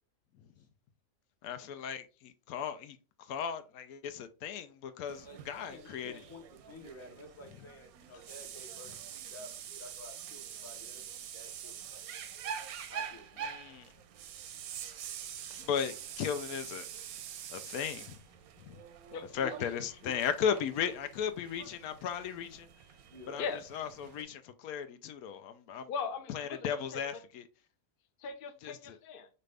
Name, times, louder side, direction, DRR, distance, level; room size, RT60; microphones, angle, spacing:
voice 1, 1.4-6.1 13.5-13.9 15.5-16.9 17.5-18.2 18.6-18.8 19.3-22.7 23.3-23.4 23.7-25.9 26.3-27.4 28.6-29.0, left 8 dB, 85° left, 1.1 m, -36 dB
sound 1, 5.1-24.2, right 8 dB, 85° right, 1.1 m, -46 dB
voice 2, 5.2-12.0 12.9-13.6 20.1-20.3 20.6-20.7 23.1-23.4, left 1 dB, 15° left, 0.7 m, -52 dB
voice 3, 19.1-19.8 23.4-23.6 25.9-27.2 28.2-29.3, left 5 dB, 50° left, 0.7 m, -40 dB
5.6 x 2.6 x 3.3 m
omnidirectional pair, 1.5 m